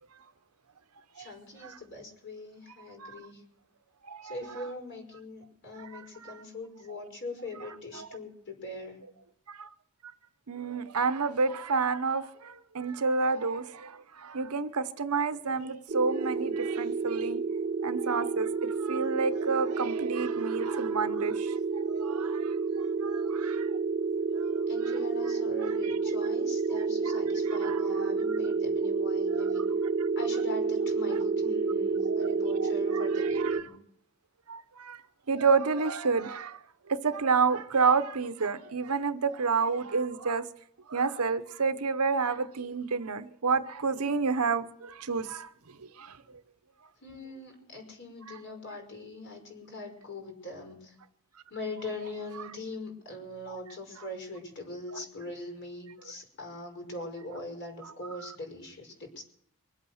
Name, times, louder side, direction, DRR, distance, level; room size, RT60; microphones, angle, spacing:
voice 1, 1.2-3.4 4.2-9.0 24.7-29.6 30.1-33.7 47.0-51.0 51.5-59.2, left 2 dB, 55° left, 5.6 m, -42 dB
voice 2, 10.5-17.4 17.8-21.6 21.9-23.7 24.3-24.6 25.6-26.0 27.0-27.2 27.5-27.8 28.3-28.4 29.3-29.5 32.2-32.3 32.6-33.6 34.5-35.0 35.3-36.6 36.9-40.5 40.9-45.5 46.0-46.2, right 5 dB, 85° right, 0.9 m, -30 dB
sound 1, 15.9-33.6, right 4 dB, 45° right, 0.6 m, -29 dB
24.5 x 8.4 x 6.5 m
head